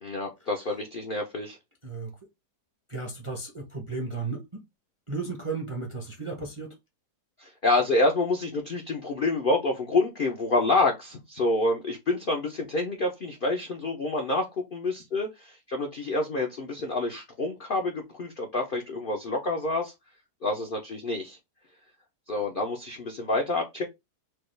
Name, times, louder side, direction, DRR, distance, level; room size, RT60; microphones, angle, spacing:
voice 1, 0.0-1.6 7.4-14.5 14.7-19.9 20.4-21.4 22.3-23.9, left 2 dB, 60° left, 0.5 m, -27 dB
voice 2, 2.9-4.4 5.1-6.7, right 4 dB, 30° right, 0.6 m, -34 dB
4.6 x 2.3 x 3.2 m
omnidirectional pair, 1.8 m